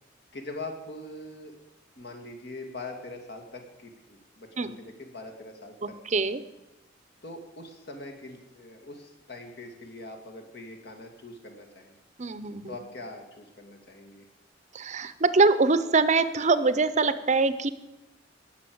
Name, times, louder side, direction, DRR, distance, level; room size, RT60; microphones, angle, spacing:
voice 1, 0.3-1.6 2.0-6.0 7.2-12.0 12.7-14.3, left 2 dB, 60° left, 4 dB, 2.4 m, -42 dB
voice 2, 6.1-6.4 12.2-12.7 14.7-17.7, right 3 dB, 40° right, 13 dB, 0.7 m, -23 dB
18.0 x 6.6 x 7.9 m, 0.97 s
head